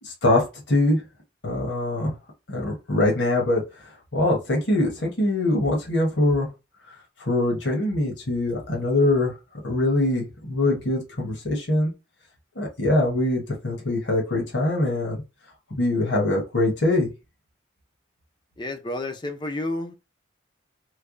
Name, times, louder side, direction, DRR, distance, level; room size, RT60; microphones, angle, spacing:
voice 1, 0.0-1.0 1.4-2.1 2.5-6.5 7.3-9.3 9.6-11.9 12.5-15.2 15.7-17.1, left 2 dB, 65° left, 1.2 m, -23 dB
voice 2, 18.6-19.9, left 2 dB, 25° left, 0.5 m, -30 dB
3.2 x 2.2 x 3.7 m
head